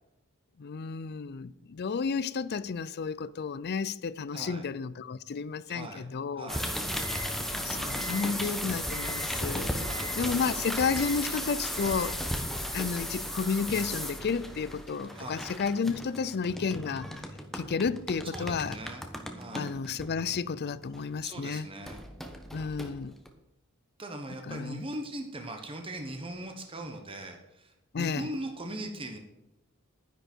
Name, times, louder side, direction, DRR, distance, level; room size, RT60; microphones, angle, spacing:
voice 1, 0.6-6.5 7.5-9.7 10.2-12.2 12.7-17.1 17.5-18.8 19.5-21.7 22.5-23.2 24.5-24.8 27.9-28.3, left 5 dB, 50° left, 0.5 m, -32 dB
voice 2, 4.3-4.6 5.7-6.1 6.3-6.7 9.8-10.1 15.1-15.5 18.3-19.0 19.3-19.7 21.2-22.0 24.0-29.2, right 1 dB, 25° right, 1.2 m, -40 dB
sound 1, 6.5-21.3 21.8-23.3, equal, ahead, 1.1 m, -35 dB
11.0 x 10.5 x 4.5 m
head